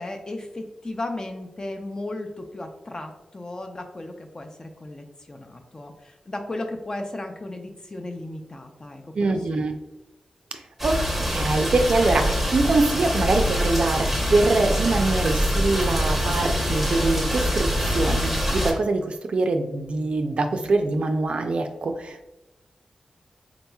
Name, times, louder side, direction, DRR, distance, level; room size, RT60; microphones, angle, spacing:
voice 1, 0.0-9.6, left 2 dB, 35° left, 4 dB, 0.5 m, -35 dB
voice 2, 9.1-9.7 10.8-11.0 11.3-22.3, right 3 dB, 60° right, 6 dB, 0.4 m, -23 dB
sound 1, 10.8-18.7, equal, ahead, 0.8 m, -24 dB
3.8 x 2.9 x 2.2 m, 0.93 s
cardioid pair, 60°, 2 cm